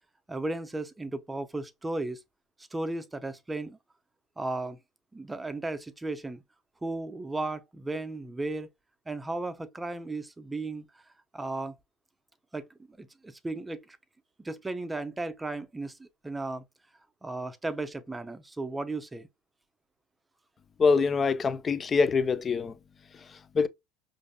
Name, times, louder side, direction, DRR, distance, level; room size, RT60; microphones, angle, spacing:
voice 1, 0.3-2.2 2.7-3.8 4.4-4.8 5.1-6.4 6.8-8.7 9.1-11.0 11.3-11.7 12.5-14.0 14.4-16.6 17.2-19.3, right 2 dB, 10° right, 0.6 m, -35 dB
voice 2, 20.8-22.7 23.5-23.7, left 4 dB, 30° left, 0.5 m, -24 dB
5.1 x 2.6 x 2.3 m
supercardioid pair, 95°, 0 cm